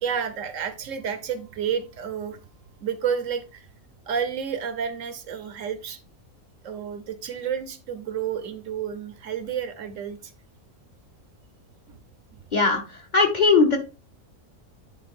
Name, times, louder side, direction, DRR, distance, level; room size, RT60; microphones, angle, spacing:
voice 1, 0.0-2.4 2.8-3.7 4.1-6.0 6.6-10.2, right 7 dB, 65° right, 1.0 m, -30 dB
voice 2, 12.5-13.8, left 4 dB, 35° left, 1.0 m, -19 dB
9.5 x 3.5 x 3.6 m
omnidirectional pair, 1.5 m